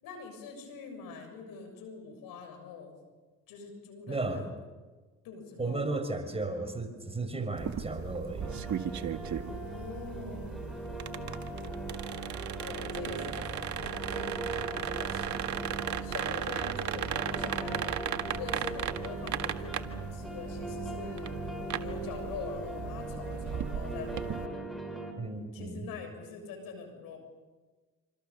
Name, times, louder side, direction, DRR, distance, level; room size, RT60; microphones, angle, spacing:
voice 1, 0.0-2.9 3.5-4.5 5.2-6.0 9.5-10.7 12.6-17.9 18.3-21.4 21.8-24.6 25.5-27.2, left 5 dB, 75° left, 5 dB, 7.2 m, -44 dB
voice 2, 4.1-4.4 5.6-8.6 25.2-25.9, right 2 dB, 15° right, 5 dB, 5.9 m, -34 dB
sound 1, 7.6-24.5, right 9 dB, 55° right, 1.8 m, -37 dB
sound 2, 8.4-25.1, right 1 dB, ahead, 6.3 m, -40 dB
27.5 x 26.5 x 7.0 m, 1.3 s
supercardioid pair, 70°, 35 cm